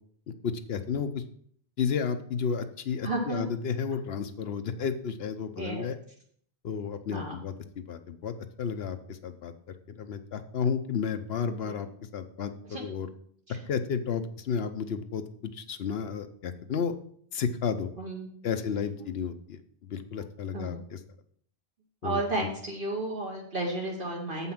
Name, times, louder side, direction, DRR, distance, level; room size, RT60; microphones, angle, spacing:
voice 1, 0.4-1.2 1.8-6.0 6.6-9.5 10.0-11.9 12.1-12.5 12.8-13.1 13.7-15.2 15.5-16.9 17.3-17.9 18.4-21.0 22.0-22.2, left 6 dB, 75° left, 9 dB, 0.9 m, -32 dB
voice 2, 3.0-3.5 5.6-5.9 7.1-7.3 11.6-11.8 12.7-12.8 13.5-13.6 18.0-18.3 19.0-19.1 20.5-20.9 22.0-24.5, right 2 dB, 55° right, -2 dB, 1.3 m, -33 dB
7.4 x 5.6 x 5.9 m, 0.62 s
omnidirectional pair, 1.1 m